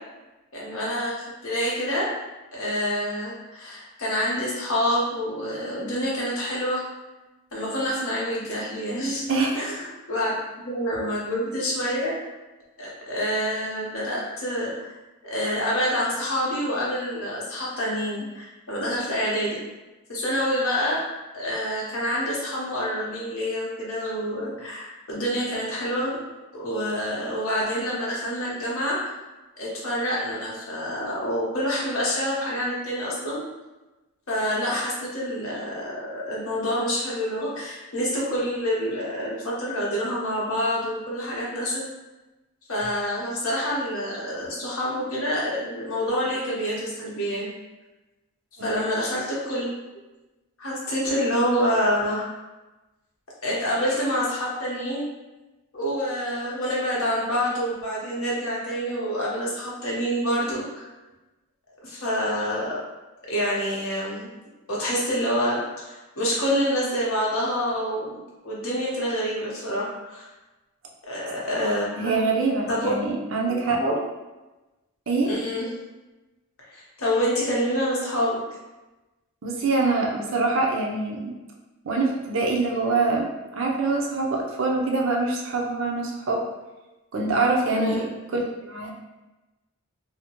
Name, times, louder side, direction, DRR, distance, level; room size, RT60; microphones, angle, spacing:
voice 1, 0.5-2.1 2.5-6.9 7.5-9.2 9.5-10.3 10.6-12.1 12.8-14.9 15.2-19.6 20.1-21.0 21.3-26.2 26.5-29.0 29.6-33.4 34.3-41.8 42.7-47.5 48.6-49.7 50.6-52.3 53.4-55.1 55.7-60.9 61.8-62.8 63.3-64.3 64.7-68.1 68.4-70.3 71.1-72.3 72.7-72.9 73.5-73.9 75.2-75.7 76.7-78.4 87.7-88.0, equal, 70° left, -5 dB, 0.8 m, -27 dB
voice 2, 72.0-73.8 75.1-75.3 79.4-81.3 81.8-86.4 87.1-88.0 88.3-88.9, right 3 dB, 60° right, -1 dB, 0.5 m, -24 dB
2.7 x 2.1 x 2.8 m, 1.1 s
head